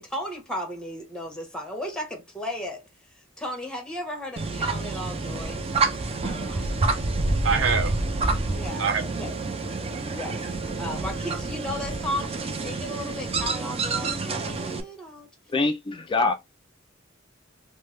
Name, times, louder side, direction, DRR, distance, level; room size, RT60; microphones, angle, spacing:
voice 1, 0.0-2.8 3.1-5.7 6.2-7.0 8.5-8.9 9.2-9.4 10.1-15.3, equal, 5° left, 1.1 m, -35 dB
sound 1, 4.4-14.8, right 3 dB, 30° right, 0.5 m, -28 dB
voice 2, 6.3-9.0 9.8-10.0, right 5 dB, 75° right, 0.7 m, -29 dB
voice 3, 15.5-16.3, left 3 dB, 25° left, 0.4 m, -24 dB
3.2 x 2.1 x 3.1 m
head